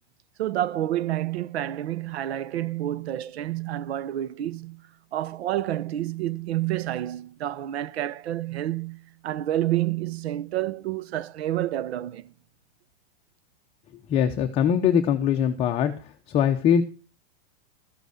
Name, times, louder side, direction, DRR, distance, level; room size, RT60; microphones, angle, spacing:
voice 1, 0.4-4.8 5.1-12.3, right 13 dB, 75° right, 0.9 m, -29 dB
voice 2, 14.1-15.9 16.3-16.8, left 8 dB, 20° left, 0.7 m, -22 dB
13.5 x 8.0 x 6.5 m
supercardioid pair, 165°, 32 cm